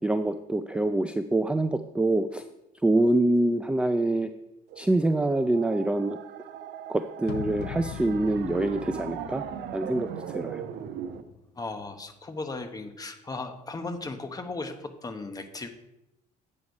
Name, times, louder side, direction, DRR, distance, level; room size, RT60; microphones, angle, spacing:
voice 1, 0.0-2.4 2.8-4.3 4.8-6.2 6.9-9.4 9.7-10.6, right 2 dB, 5° right, 8 dB, 0.4 m, -25 dB
sound 1, 4.7-11.2, right 9 dB, 80° right, 0.7 m, -39 dB
sound 2, 7.3-11.3, left 13 dB, 75° left, 0.4 m, -41 dB
voice 2, 11.6-15.7, left 3 dB, 20° left, 7 dB, 1.0 m, -36 dB
8.7 x 6.3 x 5.3 m, 0.90 s
cardioid pair, 110°, 17 cm